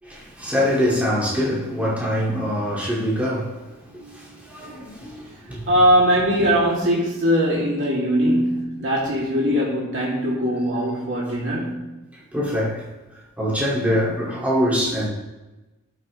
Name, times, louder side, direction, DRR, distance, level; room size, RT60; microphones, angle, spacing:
voice 1, 0.0-5.7 6.4-6.5 11.4-11.5 12.1-12.8 13.4-15.1, equal, 5° right, 2.5 m, -24 dB
voice 2, 5.7-11.8, equal, 60° right, 2.8 m, -21 dB
13.5 x 6.0 x 3.3 m
head